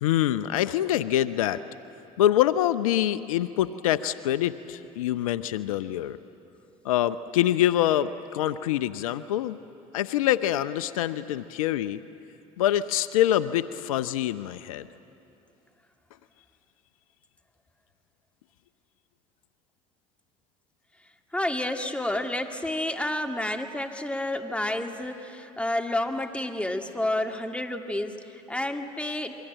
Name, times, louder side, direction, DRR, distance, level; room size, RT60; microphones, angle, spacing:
voice 1, 0.0-1.6 2.2-6.2 6.8-9.6 9.9-12.0 12.6-14.9, left 12 dB, 85° left, 13 dB, 0.6 m, -25 dB
voice 2, 21.3-29.4, left 1 dB, 5° left, 4 dB, 2.4 m, -30 dB
28.0 x 23.0 x 9.0 m, 2.8 s
hypercardioid pair, 70°, 17 cm